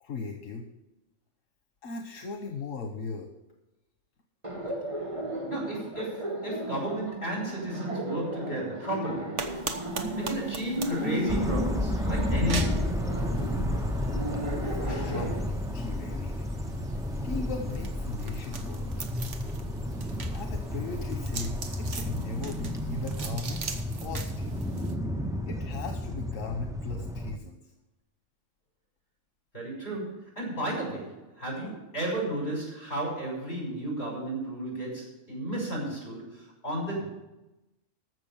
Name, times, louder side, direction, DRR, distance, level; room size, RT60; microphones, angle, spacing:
voice 1, 0.0-0.7 1.8-3.3 14.7-16.6 17.2-18.8 20.3-23.6 24.0-24.8 25.4-27.7, left 4 dB, 85° left, 4 dB, 1.4 m, -38 dB
Laughter, 4.4-15.3, right 1 dB, 25° right, 2.0 m, -34 dB
voice 2, 5.5-9.6 10.1-12.9 29.5-37.1, right 1 dB, 55° left, -2 dB, 6.3 m, -33 dB
sound 1, 9.4-25.0, right 5 dB, 70° right, 1.4 m, -42 dB
sound 2, 11.3-27.4, left 1 dB, 5° right, 0.4 m, -32 dB
14.5 x 6.2 x 7.1 m, 0.98 s
omnidirectional pair, 1.3 m